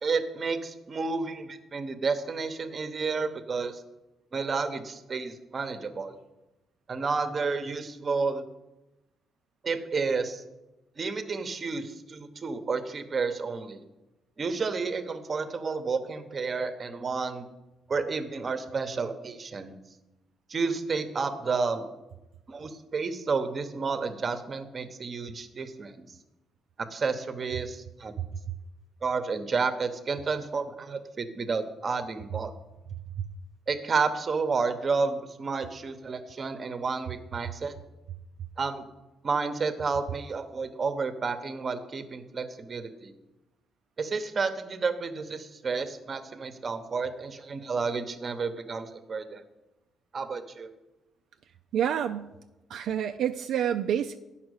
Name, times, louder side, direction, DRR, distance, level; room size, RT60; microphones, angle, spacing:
voice 1, 0.0-3.8 4.3-6.2 6.9-8.4 9.6-10.4 11.0-13.8 14.4-17.5 17.9-19.8 20.5-21.9 22.5-25.9 26.8-28.1 29.0-32.5 33.7-37.7 38.6-38.9 39.2-43.1 44.0-49.4 50.1-50.7, right 4 dB, 40° right, 9 dB, 0.9 m, -31 dB
voice 2, 51.7-52.3 52.7-54.2, right 9 dB, 75° right, 6 dB, 0.4 m, -28 dB
9.5 x 5.7 x 6.4 m, 0.99 s
cardioid pair, 90°, 0 cm